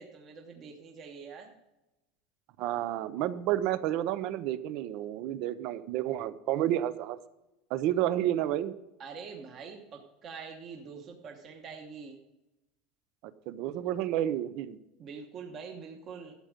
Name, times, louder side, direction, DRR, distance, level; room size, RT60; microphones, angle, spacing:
voice 1, 0.0-1.5 9.0-12.2 15.0-16.3, right 5 dB, 30° right, 2 dB, 1.1 m, -45 dB
voice 2, 2.6-7.2 7.7-8.7 13.5-14.8, right 12 dB, 45° right, 14 dB, 0.7 m, -30 dB
12.5 x 7.9 x 5.1 m, 0.98 s
cardioid pair, 170°, 0 cm